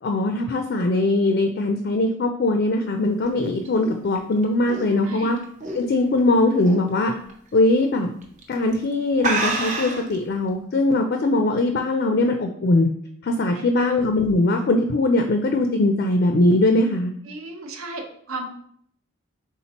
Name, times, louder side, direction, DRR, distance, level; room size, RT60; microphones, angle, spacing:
voice 1, 0.0-5.4 5.7-7.1 7.5-8.1 8.5-12.9 13.2-17.1, left 2 dB, 50° left, 5 dB, 0.3 m, -21 dB
sound 1, 3.1-6.2 6.6-6.9 7.3-7.4 8.2-8.4 8.7-8.8 9.2-10.1, right 2 dB, 35° right, 0.6 m, -28 dB
voice 2, 4.9-5.3 11.3-11.5 13.5-13.9 17.2-18.5, right 2 dB, 80° right, 4 dB, 0.7 m, -36 dB
4.2 x 3.7 x 2.9 m, 0.64 s
head